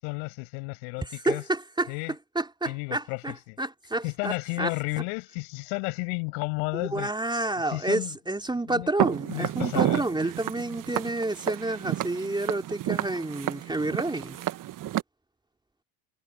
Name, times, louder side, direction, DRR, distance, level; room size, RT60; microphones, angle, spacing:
voice 1, 0.0-1.4 1.9-2.1 2.7-3.6 4.0-7.1 7.7-8.2 8.7-8.9 9.3-10.0, left 39 dB, 70° left, 7.5 m, -32 dB
voice 2, 1.0-1.9 2.3-4.7 6.7-14.4, right 2 dB, 10° right, 3.4 m, -29 dB
Walk footsteps, 9.0-15.0, right 13 dB, 45° right, 1.4 m, -30 dB
hypercardioid pair, 80°, 44 cm